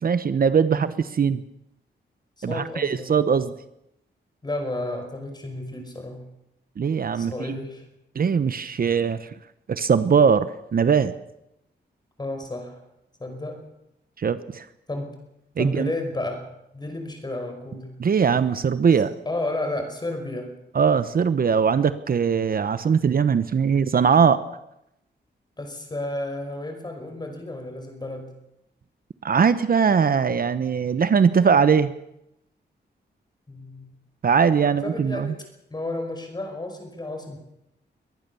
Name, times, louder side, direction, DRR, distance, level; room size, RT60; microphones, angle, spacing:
voice 1, 0.0-1.4 2.4-3.5 6.8-7.6 8.1-9.3 9.7-11.1 14.2-14.7 15.6-15.9 18.0-19.1 20.7-24.4 29.2-31.9 34.2-35.3, right 6 dB, 55° right, 13 dB, 1.0 m, -21 dB
voice 2, 2.4-3.1 4.4-6.2 7.1-7.8 12.2-12.8 13.2-13.6 14.9-15.1 15.6-16.4 16.7-18.0 19.3-20.6 25.6-28.3 33.5-33.9 34.6-35.4 35.7-37.4, left 2 dB, 20° left, 5 dB, 5.3 m, -32 dB
23.0 x 18.5 x 7.0 m, 0.82 s
wide cardioid pair, 135°, 19 cm